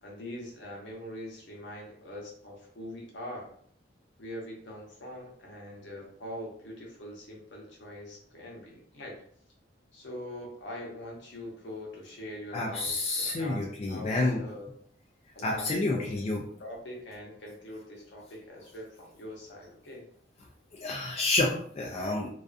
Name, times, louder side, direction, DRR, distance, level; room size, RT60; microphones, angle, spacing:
voice 1, 0.0-3.5 4.2-9.2 9.9-14.7 15.4-16.1 16.6-20.1, left 1 dB, 70° left, -2 dB, 0.8 m, -43 dB
voice 2, 12.5-14.4 15.4-16.4 20.7-22.3, left 2 dB, 35° left, -1 dB, 0.3 m, -29 dB
2.4 x 2.3 x 2.4 m, 0.62 s
head